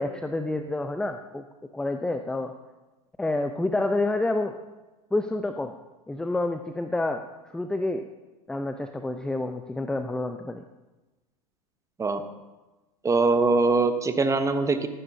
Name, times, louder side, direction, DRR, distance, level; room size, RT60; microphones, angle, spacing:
voice 1, 0.0-1.4 1.7-2.5 3.2-4.6 5.1-5.7 6.1-7.2 7.5-8.0 8.5-10.6, left 2 dB, 5° left, 7 dB, 0.5 m, -28 dB
voice 2, 13.0-14.9, right 3 dB, 15° right, 9 dB, 1.0 m, -22 dB
13.5 x 11.0 x 2.7 m, 1.1 s
figure-of-eight pair, 85°, 20 cm